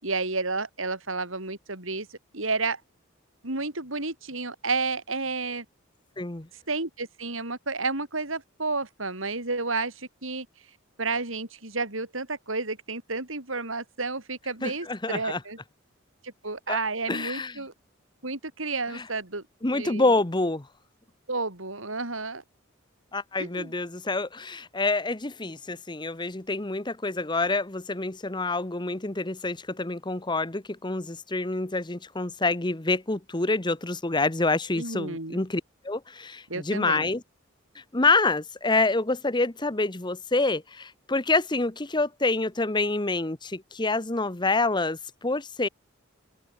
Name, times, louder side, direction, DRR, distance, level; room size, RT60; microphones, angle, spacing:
voice 1, 0.0-2.8 3.4-5.7 6.7-10.5 11.0-15.6 16.2-17.7 18.2-19.4 19.7-20.2 21.3-22.4 23.4-23.7 34.7-35.4 36.5-37.1, right 3 dB, 80° right, 5.5 m, -31 dB
voice 2, 6.2-6.5 14.6-15.4 16.7-16.8 17.1-17.5 18.9-19.0 19.6-20.7 23.1-37.2 37.7-45.7, left 3 dB, 20° left, 1.1 m, -27 dB
open air
head